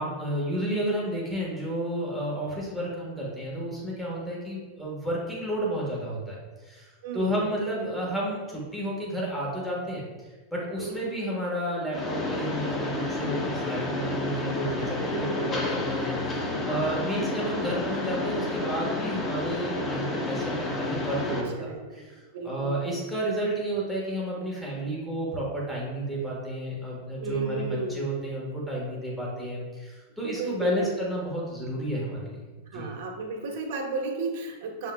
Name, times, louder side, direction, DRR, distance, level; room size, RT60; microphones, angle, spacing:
voice 1, 0.0-6.4 6.6-10.0 10.5-21.6 21.9-32.4 32.7-32.9, right 1 dB, ahead, -5 dB, 1.3 m, -31 dB
voice 2, 7.0-7.5 7.8-8.1 10.8-11.1 15.0-15.5 21.3-22.0 22.3-22.8 27.2-28.0 30.4-31.1 32.7-34.9, right 4 dB, 60° right, 1 dB, 1.1 m, -33 dB
Mechanisms, 11.9-21.4, left 2 dB, 20° left, 0.8 m, -30 dB
6.2 x 3.7 x 2.3 m, 1.3 s
hypercardioid pair, 125°, 0 cm